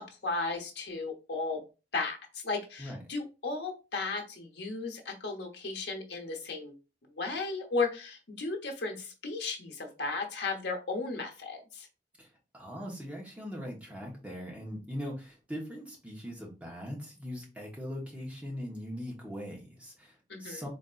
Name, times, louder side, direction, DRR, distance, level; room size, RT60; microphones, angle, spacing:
voice 1, 0.0-1.6 1.9-6.8 7.2-11.9 20.3-20.7, left 3 dB, 75° left, 3 dB, 1.0 m, -35 dB
voice 2, 12.5-20.1 20.4-20.7, equal, 10° right, -2 dB, 1.1 m, -40 dB
4.0 x 3.5 x 2.4 m, 0.31 s
head